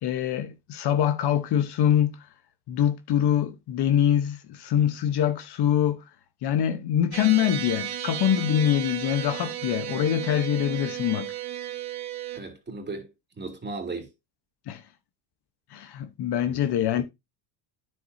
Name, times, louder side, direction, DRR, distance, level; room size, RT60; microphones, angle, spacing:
voice 1, 0.0-2.2 2.7-6.0 6.4-11.3 14.7-14.8 15.7-17.0, left 10 dB, 55° left, 1.1 m, -24 dB
sound 1, 7.1-12.4, right 11 dB, 50° right, 1.7 m, -34 dB
voice 2, 12.3-14.1 16.5-17.0, right 3 dB, 20° right, 2.9 m, -37 dB
9.6 x 7.1 x 2.7 m
cardioid pair, 110°, 49 cm